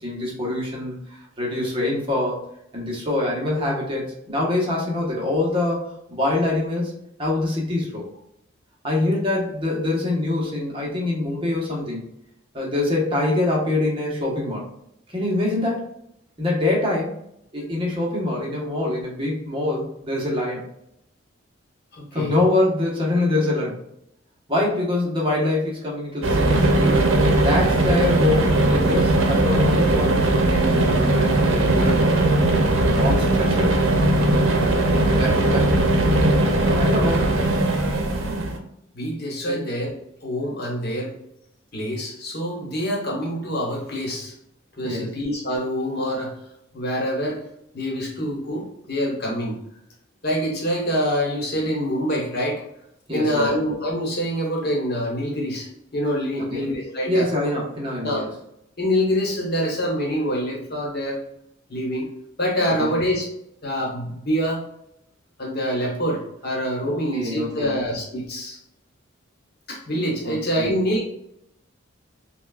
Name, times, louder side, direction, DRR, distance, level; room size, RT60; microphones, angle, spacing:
voice 1, 0.0-2.4 2.7-5.8 6.1-8.0 8.8-12.0 12.5-14.7 15.1-15.9 16.4-17.2 17.5-20.6 22.1-23.8 24.5-27.1 27.4-32.0 32.7-33.8 35.0-35.7 36.5-37.4 39.5-39.6 44.8-45.1 53.1-53.5 56.5-56.7 57.1-58.3 62.8-62.9 66.8-67.8 70.2-70.7, left 2 dB, 25° right, -3 dB, 1.0 m, -25 dB
voice 2, 21.9-22.3 38.9-39.9 40.2-41.1 41.7-44.3 44.8-46.4 46.7-47.4 47.7-49.6 50.2-52.6 53.1-57.3 58.0-58.2 58.8-61.2 61.7-62.1 62.4-63.2 63.6-64.6 65.4-68.6 69.7-71.0, equal, 55° left, -1 dB, 1.1 m, -25 dB
sound 1, 26.2-38.6, right 2 dB, 80° right, 0.6 m, -19 dB
5.9 x 2.3 x 2.3 m, 0.76 s
head